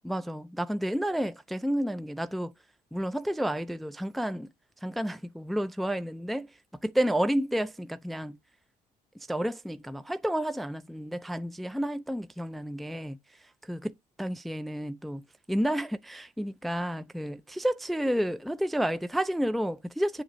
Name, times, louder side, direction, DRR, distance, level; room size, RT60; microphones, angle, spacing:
voice 1, 0.0-2.5 2.9-4.5 4.8-6.5 6.8-8.4 9.3-13.2 13.7-13.9 14.2-20.2, equal, ahead, 0.4 m, -30 dB
7.9 x 2.9 x 6.1 m
cardioid pair, 110°, 17 cm